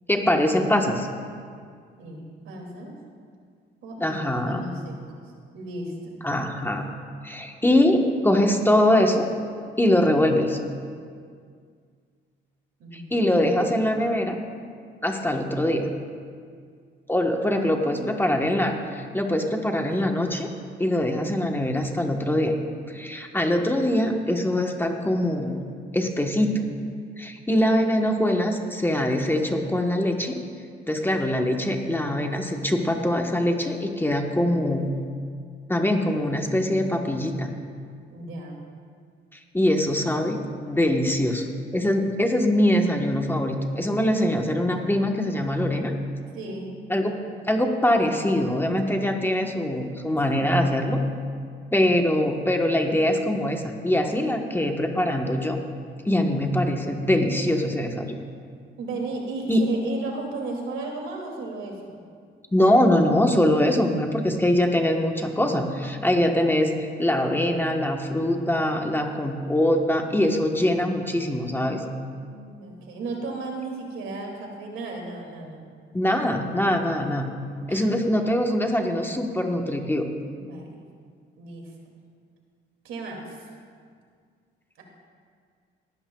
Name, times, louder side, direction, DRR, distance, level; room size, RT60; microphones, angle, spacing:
voice 1, 0.1-1.1 4.0-4.6 6.2-6.9 7.2-9.3 9.8-10.6 12.9-14.4 15.0-15.9 17.1-20.5 20.8-22.5 22.9-25.6 25.9-26.7 27.2-30.4 30.9-34.9 35.7-37.5 39.5-41.5 41.7-45.9 46.9-47.2 47.5-51.0 51.7-55.6 56.0-58.1 59.5-59.7 62.5-66.7 67.0-71.8 75.9-77.3 77.7-80.1, left 1 dB, 10° left, 2 dB, 1.1 m, -23 dB
voice 2, 2.0-2.9 3.8-5.2 5.5-6.2 12.8-13.1 17.6-18.5 38.1-38.6 46.3-46.8 50.3-50.5 58.8-62.0 72.1-75.7 77.7-78.1 80.3-80.8 81.4-81.7 82.8-83.5 84.8-84.9, right 3 dB, 85° right, 0 dB, 2.4 m, -35 dB
18.5 x 12.5 x 2.3 m, 2.1 s
cardioid pair, 90°, 20 cm